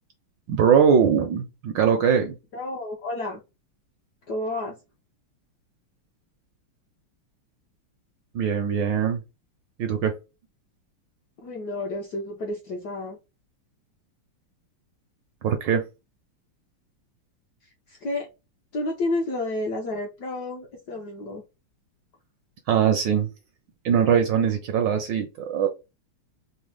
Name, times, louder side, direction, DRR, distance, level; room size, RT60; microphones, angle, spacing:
voice 1, 0.5-2.4 8.3-9.2 9.8-10.1 15.4-15.9 22.7-23.3 23.8-25.7, right 7 dB, 75° right, 1.1 m, -21 dB
voice 2, 2.5-3.4 4.3-4.8 11.4-13.2 17.9-18.3 18.7-21.4, left 2 dB, 65° left, 1.0 m, -30 dB
4.1 x 2.0 x 3.2 m
omnidirectional pair, 2.4 m